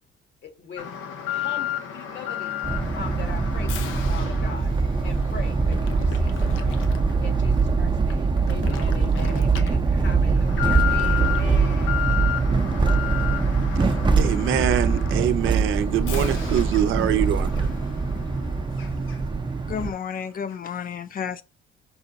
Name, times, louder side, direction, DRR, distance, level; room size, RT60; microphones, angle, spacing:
voice 1, 0.4-0.9 1.3-2.6 2.9-4.7 5.0-6.9 7.2-12.1, left 4 dB, 65° left, 1.4 m, -40 dB
Alarm, 0.8-19.4 19.8-19.9 20.5-20.6, left 10 dB, 85° left, 0.7 m, -33 dB
sound 1, 2.6-19.9, right 4 dB, 25° right, 0.6 m, -23 dB
voice 2, 13.8-17.5, right 10 dB, 85° right, 0.6 m, -24 dB
voice 3, 19.7-21.4, left 7 dB, 45° left, 0.6 m, -31 dB
5.5 x 2.3 x 3.9 m
cardioid pair, 90°, 20 cm